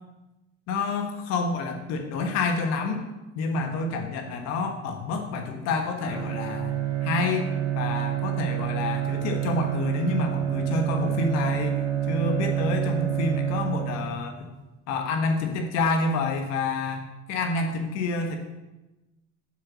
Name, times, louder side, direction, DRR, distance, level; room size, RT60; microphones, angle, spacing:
voice 1, 0.7-3.0 3.3-7.5 7.7-11.8 12.1-14.3 14.9-18.4, left 3 dB, 60° left, 5 dB, 1.3 m, -28 dB
Bowed string instrument, 6.0-14.3, right 11 dB, 55° right, 2.9 m, -28 dB
7.8 x 6.4 x 7.4 m, 1.0 s
cardioid pair, 180°, 30 cm